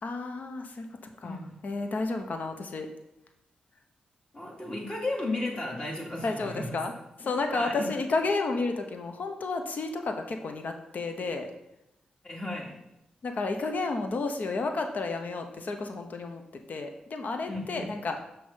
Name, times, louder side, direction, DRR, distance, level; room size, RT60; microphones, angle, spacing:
voice 1, 0.0-2.9 6.2-6.9 7.2-11.5 13.2-16.4 16.7-18.2, left 3 dB, 65° left, 5 dB, 0.9 m, -31 dB
voice 2, 1.2-1.5 4.3-6.8 7.2-7.9 12.2-12.7 17.5-17.9, left 2 dB, 35° left, -2 dB, 2.6 m, -34 dB
6.1 x 4.7 x 5.6 m, 0.89 s
supercardioid pair, 45°, 3 cm